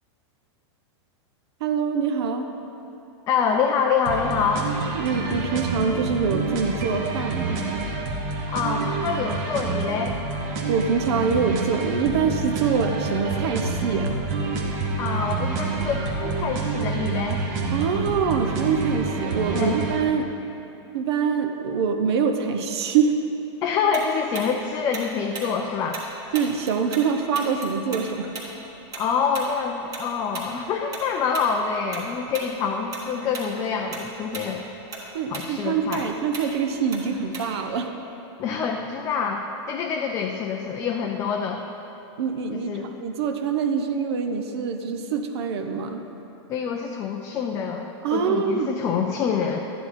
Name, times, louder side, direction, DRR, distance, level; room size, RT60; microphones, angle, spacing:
voice 1, 1.6-2.5 4.9-7.6 10.7-14.2 17.7-20.3 20.9-23.2 26.3-28.3 35.1-37.9 42.2-46.1 48.0-48.7, right 6 dB, 60° right, 6 dB, 0.9 m, -25 dB
voice 2, 3.3-4.7 8.5-10.2 15.0-17.4 19.5-19.8 23.6-26.0 28.9-34.7 35.3-36.0 38.4-41.6 42.5-42.9 46.5-49.6, left 6 dB, 20° left, 1 dB, 0.5 m, -26 dB
sound 1, 4.0-20.0, right 3 dB, 40° right, 1.2 m, -28 dB
Tick-tock, 23.9-27.1 27.3-32.1 32.3-32.5 32.9-33.5 33.8-37.8, right 3 dB, 25° right, 1.5 m, -37 dB
12.0 x 9.5 x 4.3 m, 2.9 s
supercardioid pair, 165°, 15 cm